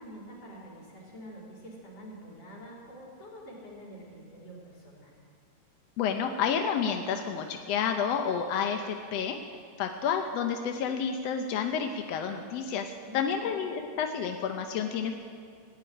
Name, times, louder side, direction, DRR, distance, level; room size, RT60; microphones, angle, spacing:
voice 1, 0.0-5.1 13.1-13.6, equal, 50° left, -4 dB, 4.4 m, -47 dB
voice 2, 6.0-9.4 9.8-15.2, left 7 dB, 70° left, 5 dB, 1.6 m, -30 dB
15.5 x 8.3 x 9.8 m, 2.1 s
omnidirectional pair, 3.6 m